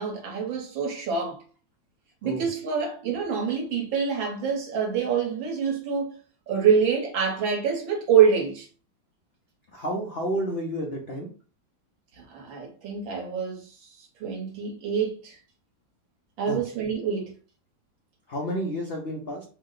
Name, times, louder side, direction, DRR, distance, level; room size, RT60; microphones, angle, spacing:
voice 1, 0.0-1.4 2.2-6.2 6.5-8.7 12.2-15.4 16.4-17.3, right 6 dB, 70° right, 1.9 m, -26 dB
voice 2, 9.7-11.3 16.5-16.6 18.3-19.4, equal, 80° left, 0.5 m, -30 dB
4.8 x 2.1 x 3.8 m
omnidirectional pair, 2.2 m